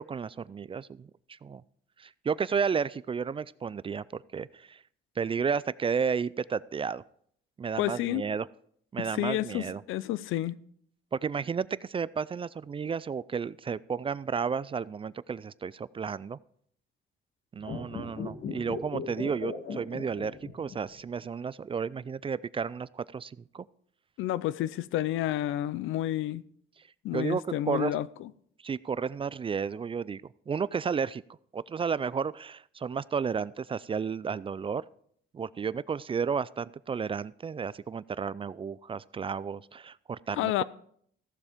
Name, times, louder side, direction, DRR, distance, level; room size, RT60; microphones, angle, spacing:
voice 1, 0.0-1.6 2.0-4.8 5.2-7.0 7.6-8.5 8.9-9.8 11.1-16.4 17.5-23.7 27.1-28.0 28.6-31.2 31.5-34.8 35.3-40.6, right 6 dB, 25° right, 0.3 m, -32 dB
voice 2, 7.8-8.2 9.0-10.6 24.2-26.4 27.0-28.3 40.3-40.6, left 13 dB, 85° left, 0.5 m, -30 dB
sound 1, 17.6-21.0 21.2-21.3, left 4 dB, 65° left, 2.0 m, -37 dB
14.5 x 7.2 x 5.0 m
cardioid pair, 90°, 20 cm